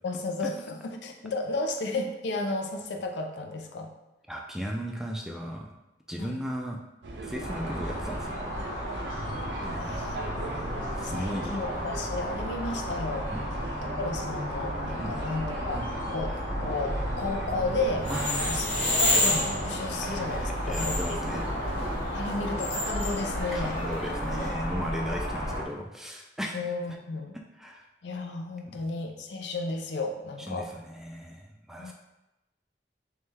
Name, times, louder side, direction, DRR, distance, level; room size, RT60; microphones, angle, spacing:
voice 1, 0.0-3.9 6.2-6.4 9.7-13.3 13.8-18.1 18.4-21.2 22.1-23.8 26.5-27.3 28.0-30.7 31.8-31.9, left 3 dB, 80° left, 4 dB, 0.5 m, -33 dB
voice 2, 4.3-5.7 6.1-6.8 7.2-8.4 9.6-10.0 11.0-11.8 13.3-13.5 15.0-15.2 18.1-18.5 20.0-21.8 23.5-26.7 27.6-27.9 28.7-28.8 30.5-31.9, equal, ahead, 1 dB, 0.3 m, -36 dB
sound 1, 7.0-22.0, right 2 dB, 90° right, 0.6 m, -38 dB
sound 2, 7.4-25.6, equal, 50° left, 0.9 m, -34 dB
sound 3, 18.0-24.5, left 1 dB, 35° left, 1.1 m, -31 dB
3.3 x 3.1 x 3.3 m, 0.97 s
head